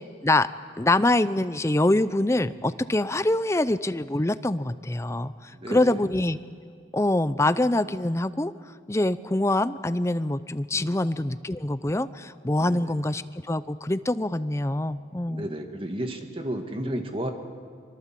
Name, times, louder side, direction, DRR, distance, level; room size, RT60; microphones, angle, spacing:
voice 1, 0.8-6.4 6.9-8.5 8.9-15.5, left 1 dB, 15° left, 14 dB, 0.5 m, -25 dB
voice 2, 5.5-6.1 10.7-11.0 12.6-12.9 15.3-17.3, right 1 dB, 30° right, 5 dB, 2.0 m, -33 dB
25.0 x 24.0 x 7.6 m, 2.1 s
head